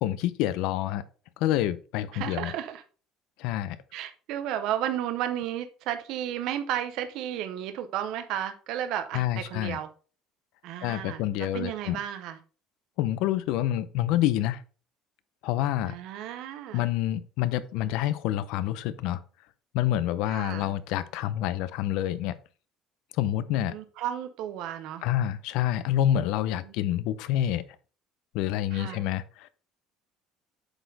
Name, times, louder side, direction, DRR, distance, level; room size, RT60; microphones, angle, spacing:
voice 1, 0.0-1.0 1.4-2.5 3.4-3.8 9.1-9.8 10.8-12.0 13.0-14.6 15.4-15.9 16.7-19.2 19.7-22.3 23.1-23.7 25.0-27.6 28.3-29.5, left 12 dB, 70° left, 15 dB, 0.5 m, -27 dB
voice 2, 2.1-2.8 3.9-9.9 10.6-12.4 15.9-16.9 20.3-20.7 23.5-25.0 26.4-26.7 28.7-29.0, right 11 dB, 60° right, 9 dB, 0.6 m, -33 dB
7.9 x 4.2 x 4.0 m, 0.37 s
cardioid pair, 170°, 0 cm